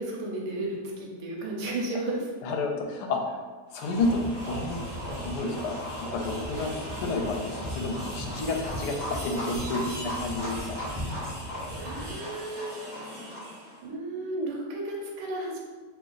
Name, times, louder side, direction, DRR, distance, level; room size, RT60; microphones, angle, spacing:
voice 1, 0.0-2.3 11.8-13.0 13.8-15.6, right 2 dB, 90° right, -2 dB, 1.3 m, -33 dB
voice 2, 2.4-3.4 3.7-4.8 5.2-5.8 6.1-6.7 7.0-10.8, left 3 dB, 85° left, 2 dB, 1.2 m, -30 dB
sound 1, 3.7-13.8, equal, 15° right, 1.1 m, -38 dB
sound 2, 3.9-12.1, equal, 35° right, 0.7 m, -39 dB
3.1 x 2.5 x 3.8 m, 1.4 s
omnidirectional pair, 1.7 m